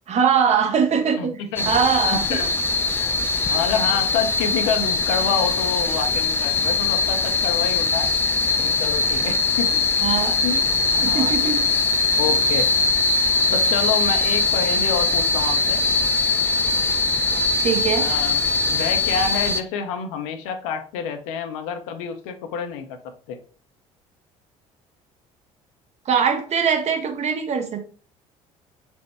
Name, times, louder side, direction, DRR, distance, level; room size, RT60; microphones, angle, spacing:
voice 1, 0.1-1.3 1.7-2.4 10.0-10.4 11.0-11.6 17.6-18.1 26.1-27.9, right 7 dB, 40° right, 5 dB, 0.7 m, -21 dB
voice 2, 1.2-1.7 2.1-2.5 3.5-8.1 8.6-9.8 10.4-10.6 10.9-11.3 12.2-12.7 13.5-15.8 18.0-18.4 18.7-23.4, left 6 dB, 65° left, 7 dB, 0.5 m, -28 dB
sound 1, 1.6-19.6, left 3 dB, 15° left, 0.4 m, -21 dB
4.3 x 2.1 x 3.2 m, 0.42 s
figure-of-eight pair, 55°, 18 cm